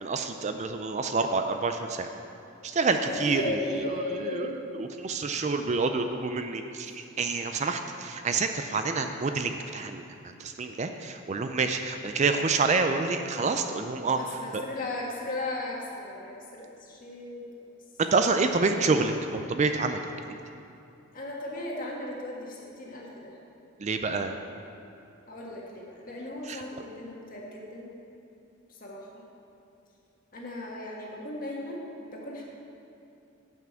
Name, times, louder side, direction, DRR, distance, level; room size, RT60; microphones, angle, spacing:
voice 1, 0.0-2.1 2.6-14.2 14.5-14.6 18.0-20.1 23.8-24.4 26.5-26.6, right 4 dB, 35° right, 7 dB, 0.4 m, -28 dB
voice 2, 3.0-4.6 14.1-17.4 18.6-18.9 21.1-23.4 25.3-27.9 28.7-29.2 30.3-32.4, left 1 dB, 40° left, -2 dB, 1.6 m, -36 dB
9.0 x 6.0 x 7.5 m, 2.7 s
head